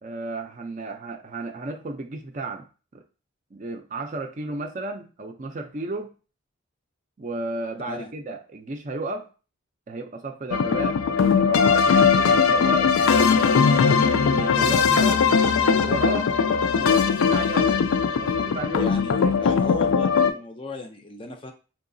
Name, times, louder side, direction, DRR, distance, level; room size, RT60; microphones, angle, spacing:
voice 1, 0.0-2.7 2.9-3.0 3.5-6.1 7.2-9.3 9.9-15.2 15.7-16.3 16.7-17.8 18.1-19.5, right 2 dB, 35° right, 5 dB, 0.4 m, -33 dB
sound 1, 10.5-20.3, left 6 dB, 85° left, 0.4 m, -20 dB
voice 2, 18.8-19.2 19.4-21.5, left 2 dB, 25° left, 4 dB, 0.4 m, -35 dB
4.7 x 2.8 x 2.6 m, 0.34 s
head